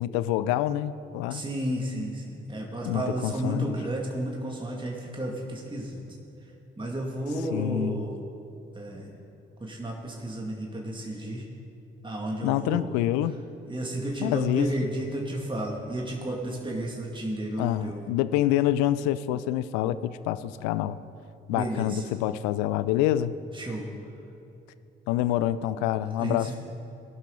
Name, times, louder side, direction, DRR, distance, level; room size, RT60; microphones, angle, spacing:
voice 1, 0.0-1.4 2.9-3.7 7.5-8.0 12.4-13.4 14.2-14.9 17.6-21.0 21.5-23.3 25.1-26.5, left 12 dB, 70° left, 15 dB, 0.5 m, -27 dB
voice 2, 1.3-6.0 6.8-8.2 8.7-9.1 9.6-11.4 12.0-12.8 13.7-18.0 21.5-22.0 23.5-23.9 26.0-26.5, right 1 dB, 15° right, -1 dB, 2.2 m, -32 dB
19.0 x 11.5 x 3.9 m, 2.9 s
figure-of-eight pair, 40°, 30 cm